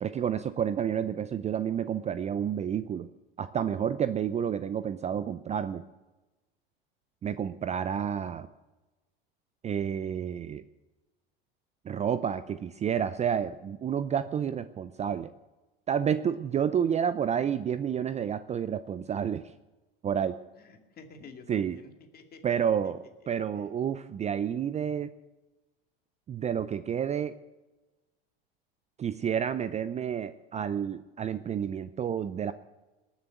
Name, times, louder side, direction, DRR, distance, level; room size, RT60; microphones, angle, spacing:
voice 1, 0.0-3.1 3.4-5.8 7.2-8.5 9.6-10.6 11.8-15.3 15.9-19.5 20.0-20.4 21.5-21.8 22.4-25.1 26.3-27.4 29.0-32.5, right 8 dB, 25° right, 14 dB, 0.5 m, -30 dB
voice 2, 20.6-22.4 23.5-23.7, left 4 dB, 30° left, 5 dB, 2.3 m, -50 dB
20.0 x 7.2 x 7.8 m, 1.1 s
hypercardioid pair, 95°, 30 cm